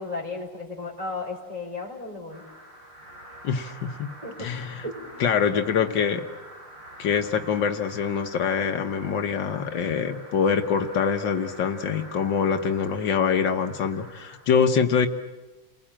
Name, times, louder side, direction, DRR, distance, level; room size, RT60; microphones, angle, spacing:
voice 1, 0.0-2.4 4.2-4.5 4.8-5.3, left 3 dB, 20° right, 2 dB, 4.5 m, -35 dB
sound 1, 2.3-14.3, right 1 dB, 85° right, 8.5 m, -46 dB
voice 2, 3.4-4.1 4.4-4.9 5.2-6.2 7.0-15.1, left 6 dB, 75° left, 7 dB, 1.8 m, -24 dB
30.0 x 20.5 x 8.8 m, 1.2 s
omnidirectional pair, 2.0 m